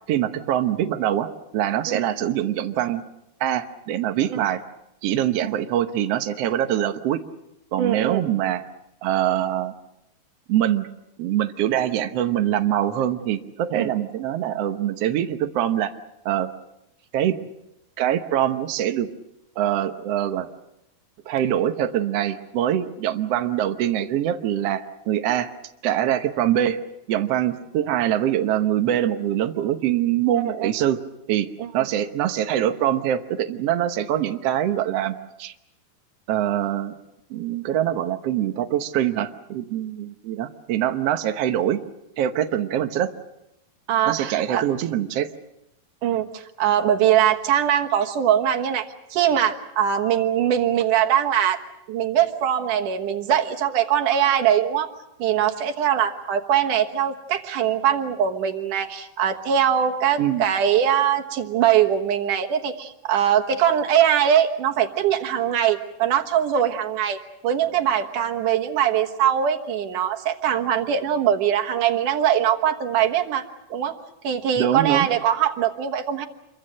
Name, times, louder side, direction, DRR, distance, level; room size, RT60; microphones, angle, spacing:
voice 1, 0.1-3.0 3.4-4.6 5.0-7.2 7.7-8.6 9.0-9.7 10.5-10.9 11.2-15.9 16.2-16.5 17.1-17.4 18.0-19.1 19.6-20.5 21.3-25.5 25.8-26.8 27.1-31.0 31.3-35.5 36.3-36.9 37.3-41.8 42.2-43.1 44.1-45.3 60.2-60.4 74.6-75.1, right 11 dB, 85° right, 7 dB, 1.4 m, -24 dB
voice 2, 7.8-8.3 13.7-13.9 30.3-30.7 31.6-31.7 43.9-44.6 46.0-51.6 51.9-54.9 55.2-73.4 73.7-74.0 74.2-76.3, right 9 dB, 65° right, 4 dB, 2.6 m, -22 dB
27.5 x 23.5 x 6.6 m, 0.87 s
omnidirectional pair, 4.4 m